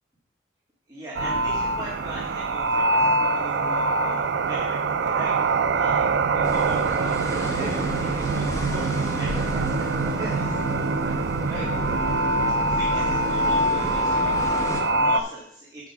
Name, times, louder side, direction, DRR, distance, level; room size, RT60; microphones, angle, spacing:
voice 1, 0.9-6.1 6.3-10.6 11.5-11.7 12.6-15.9, right 1 dB, 20° right, -6 dB, 1.7 m, -39 dB
sound 1, 1.1-15.2, right 3 dB, 65° right, 0.5 m, -24 dB
sound 2, 6.4-14.8, left 1 dB, 15° left, 1.3 m, -33 dB
7.6 x 5.2 x 5.9 m, 0.68 s
head